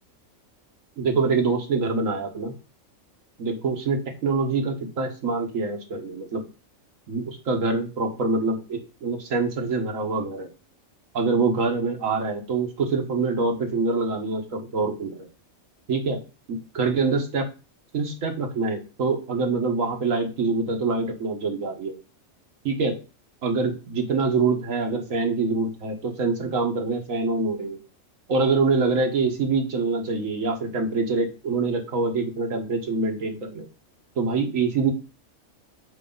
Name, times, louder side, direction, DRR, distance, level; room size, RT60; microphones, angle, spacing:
voice 1, 1.0-2.5 3.4-6.4 7.1-10.5 11.1-15.3 15.9-16.2 16.5-17.5 17.9-21.9 22.6-23.0 23.4-27.8 28.3-33.7 34.2-34.9, right 4 dB, 80° right, 3 dB, 1.5 m, -25 dB
6.0 x 4.8 x 3.8 m, 0.31 s
omnidirectional pair, 1.4 m